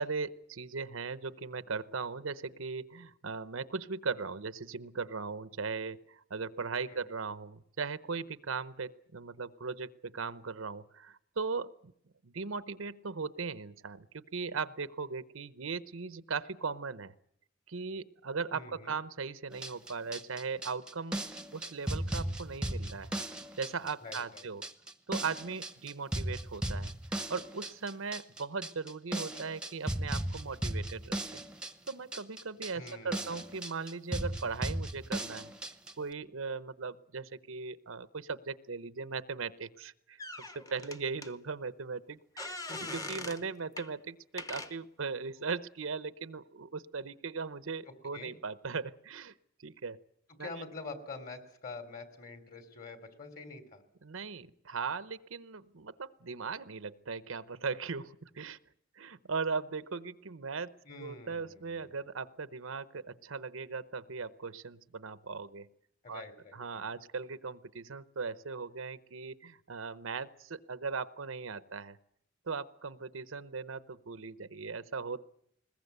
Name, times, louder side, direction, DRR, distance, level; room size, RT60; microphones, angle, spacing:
voice 1, 0.0-11.9 12.2-17.1 17.7-21.2 21.5-23.1 23.6-24.6 25.1-26.9 27.3-31.4 31.9-35.5 36.0-42.6 42.9-49.3 49.6-50.0 50.4-50.5 54.0-58.6 58.9-60.7 61.0-65.7 66.1-66.2 66.5-72.0 72.5-75.2, right 4 dB, 90° right, 14 dB, 0.8 m, -38 dB
voice 2, 18.5-18.9 24.0-24.5 32.7-33.4 42.7-42.9 47.8-48.3 50.4-53.8 60.8-61.9 66.0-66.9, left 3 dB, 45° left, 8 dB, 3.3 m, -46 dB
sound 1, 19.5-35.9, right 1 dB, 5° right, 0.8 m, -36 dB
sound 2, 40.2-41.3 42.4-43.4 43.8-43.9 44.4-44.7, left 2 dB, 20° left, 1.0 m, -41 dB
21.0 x 20.5 x 8.1 m, 0.74 s
head